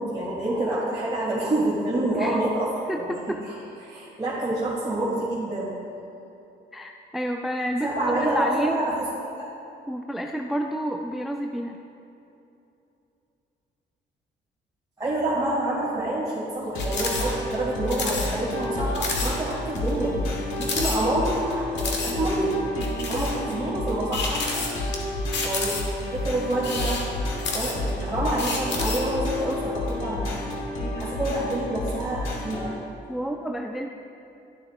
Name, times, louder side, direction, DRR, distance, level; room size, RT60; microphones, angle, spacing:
voice 1, 0.0-3.3 3.8-5.8 7.8-9.1 15.0-20.1 20.6-22.6 23.1-24.4 25.4-27.0 27.5-30.3 31.0-32.7, right 1 dB, 20° right, -9 dB, 1.8 m, -27 dB
voice 2, 2.9-3.4 6.7-8.8 9.9-11.8 33.1-33.9, equal, ahead, 3 dB, 0.4 m, -29 dB
sound 1, 16.7-32.8, left 1 dB, 85° left, 1.2 m, -30 dB
sound 2, 16.8-17.3 17.5-17.6 17.9-18.3 18.6-18.7 18.9-19.3 19.8-19.9 20.6-21.4 21.8-22.1 22.8-23.4 24.1-25.0 25.3-26.0 26.5-28.0 28.4-29.1, left 4 dB, 60° left, 1.2 m, -30 dB
11.5 x 6.8 x 2.4 m, 2.8 s
cardioid pair, 90°, 20 cm